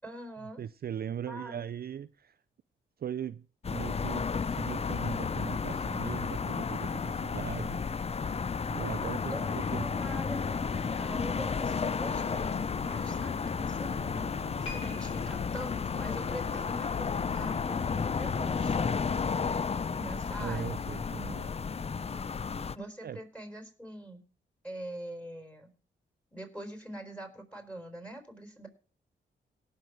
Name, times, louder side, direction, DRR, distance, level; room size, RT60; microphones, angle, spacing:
voice 1, 0.0-0.6 1.3-1.6 9.3-18.8 19.8-20.8 22.7-24.2 24.6-25.7 26.3-28.7, right 1 dB, 5° left, 4.6 m, -44 dB
voice 2, 0.6-2.3 3.0-7.8 8.7-10.0 20.4-21.5 23.0-23.2, right 9 dB, 50° right, 0.4 m, -39 dB
sound 1, 3.6-22.8, left 5 dB, 30° left, 0.5 m, -32 dB
sound 2, 11.7-19.5, left 9 dB, 65° left, 0.7 m, -42 dB
sound 3, 14.6-17.9 18.2-18.5 19.2-19.3, left 3 dB, 80° left, 3.5 m, -49 dB
18.0 x 6.6 x 4.8 m
supercardioid pair, 55°, 20 cm